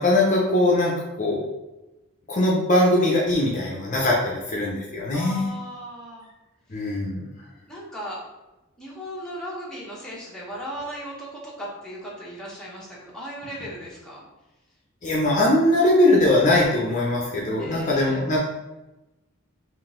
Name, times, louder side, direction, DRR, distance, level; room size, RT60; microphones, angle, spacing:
voice 1, 0.0-1.5 2.3-5.5 6.7-7.3 15.0-18.4, left 1 dB, 35° left, -3 dB, 0.5 m, -21 dB
voice 2, 5.1-6.3 7.7-8.2 8.8-14.2 17.6-18.2, equal, 5° left, -6 dB, 0.9 m, -37 dB
3.7 x 2.6 x 3.7 m, 1.0 s
head